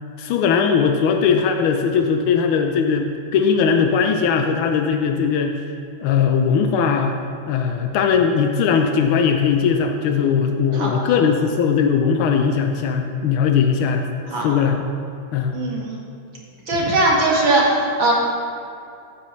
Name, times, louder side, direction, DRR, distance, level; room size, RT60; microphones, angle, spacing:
voice 1, 0.2-5.6 6.0-7.2 7.5-14.1 14.4-14.9 15.3-15.6, left 6 dB, 90° left, 4 dB, 1.6 m, -19 dB
voice 2, 10.7-11.2 14.3-14.6 15.5-16.0 16.7-18.1, right 2 dB, 70° right, -3 dB, 2.7 m, -20 dB
15.0 x 9.5 x 3.2 m, 2.5 s
omnidirectional pair, 2.3 m